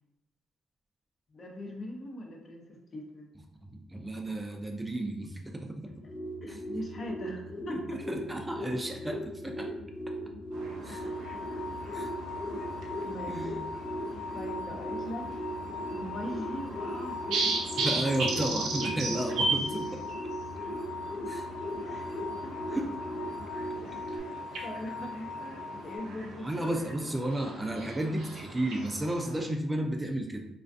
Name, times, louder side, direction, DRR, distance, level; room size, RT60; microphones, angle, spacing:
voice 1, 1.3-3.3 6.4-7.8 11.0-11.7 13.0-13.5 14.3-15.3 15.6-17.6 21.8-22.6 23.8-24.2 24.6-26.5, left 1 dB, 45° left, 0 dB, 0.6 m, -41 dB
voice 2, 3.6-6.0 6.5-6.6 7.7-9.7 10.8-11.1 11.9-12.1 13.3-13.6 17.8-20.0 21.3-21.5 22.7-22.9 24.5-24.6 26.4-30.5, right 1 dB, 15° right, 3 dB, 0.3 m, -33 dB
sound 1, 5.8-24.2, equal, 10° left, 1.0 m, -39 dB
sound 2, 10.5-29.4, right 3 dB, 80° right, 0.5 m, -37 dB
sound 3, 10.8-26.0, left 4 dB, 90° left, 1.0 m, -41 dB
2.4 x 2.2 x 2.5 m, 0.89 s
cardioid pair, 90°, 0 cm